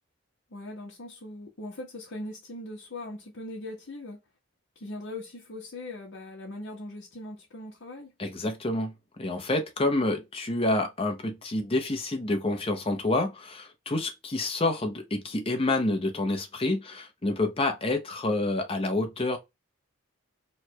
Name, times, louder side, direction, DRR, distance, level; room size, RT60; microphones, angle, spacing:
voice 1, 0.5-4.2 4.7-8.1, left 1 dB, 65° left, 0.8 m, -40 dB
voice 2, 8.2-19.4, left 2 dB, 25° left, 0.6 m, -28 dB
3.2 x 2.2 x 4.3 m
head